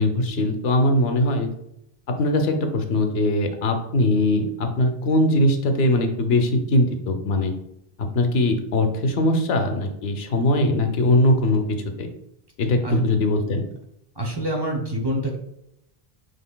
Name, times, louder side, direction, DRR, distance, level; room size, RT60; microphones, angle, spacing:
voice 1, 0.0-1.5 2.1-7.5 8.0-12.1 12.6-13.6, left 1 dB, 85° left, 6 dB, 0.9 m, -21 dB
voice 2, 14.2-15.4, right 2 dB, 30° right, 0 dB, 0.6 m, -25 dB
5.7 x 3.3 x 2.2 m, 0.80 s
omnidirectional pair, 1.0 m